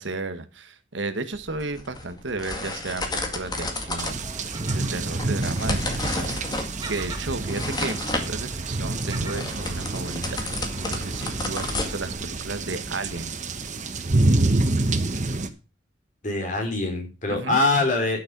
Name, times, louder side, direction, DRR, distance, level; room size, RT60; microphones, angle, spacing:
voice 1, 0.0-6.4 6.9-13.4 17.3-17.6, right 3 dB, 80° right, 10 dB, 1.2 m, -34 dB
sound 1, 1.3-12.5, left 2 dB, 20° left, 2.0 m, -33 dB
Gull seagull, 3.2-12.1, right 1 dB, 20° right, 1.7 m, -41 dB
sound 2, 4.0-15.5, right 2 dB, 40° right, 1.1 m, -27 dB
voice 2, 16.2-18.2, left 2 dB, 45° left, 2 dB, 3.7 m, -23 dB
11.0 x 6.5 x 5.9 m, 0.33 s
head